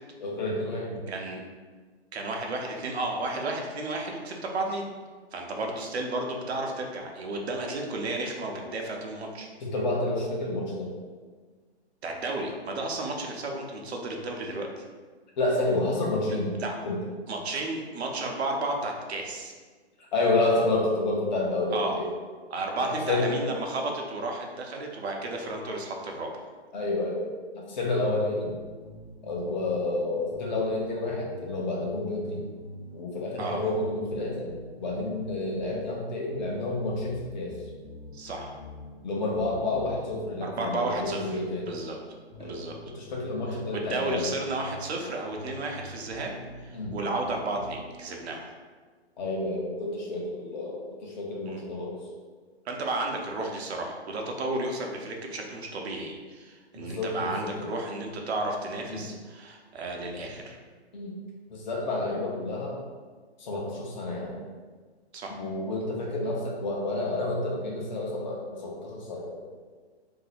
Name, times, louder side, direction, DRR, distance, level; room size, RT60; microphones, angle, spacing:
voice 1, 0.2-1.0 9.6-10.9 15.4-16.5 16.8-17.0 20.1-22.0 22.8-23.3 26.7-28.5 29.2-32.4 32.9-34.5 34.8-37.5 39.0-41.7 42.4-42.6 43.0-44.4 46.7-47.0 49.2-52.0 56.7-57.7 58.9-59.0 60.9-61.1 61.5-62.8 63.4-64.4 65.3-69.5, left 2 dB, 45° left, -2 dB, 0.7 m, -29 dB
voice 2, 1.1-1.4 2.1-4.9 5.3-9.5 12.0-14.8 16.6-16.7 17.3-19.5 21.7-22.0 22.5-26.5 33.4-33.7 38.1-38.6 40.4-42.0 42.4-42.7 43.5-46.3 46.6-48.5 51.5-51.6 52.7-60.6 65.1-65.4, right 2 dB, 70° right, 1 dB, 0.7 m, -33 dB
sound 1, 28.3-48.2, equal, 20° right, 0.5 m, -45 dB
2.7 x 2.1 x 4.0 m, 1.4 s
hypercardioid pair, 155°, 33 cm